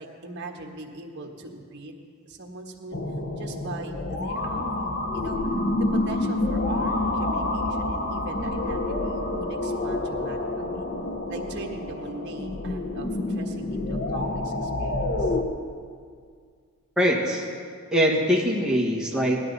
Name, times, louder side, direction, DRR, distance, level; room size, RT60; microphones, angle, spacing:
voice 1, 0.0-3.0 3.4-4.9 5.1-5.4 5.8-10.9 11.3-15.4, right 2 dB, 55° right, 1 dB, 1.5 m, -40 dB
sound 1, 2.9-15.4, left 2 dB, 50° left, 0.9 m, -28 dB
voice 2, 17.0-17.5 17.9-19.4, equal, 5° right, -3 dB, 1.6 m, -22 dB
17.5 x 12.0 x 4.1 m, 2.1 s
head